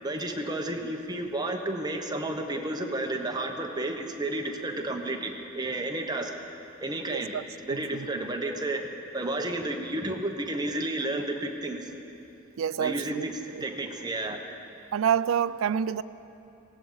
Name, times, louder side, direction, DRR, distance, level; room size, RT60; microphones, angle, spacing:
voice 1, 0.0-6.3 6.8-7.4 7.6-8.8 9.1-11.9 12.8-14.4, right 1 dB, 20° right, 1.1 m, -31 dB
voice 2, 7.1-8.1 12.6-13.3 13.5-13.6 14.9-16.0, right 8 dB, 85° right, 0.4 m, -28 dB
18.5 x 17.0 x 4.0 m
head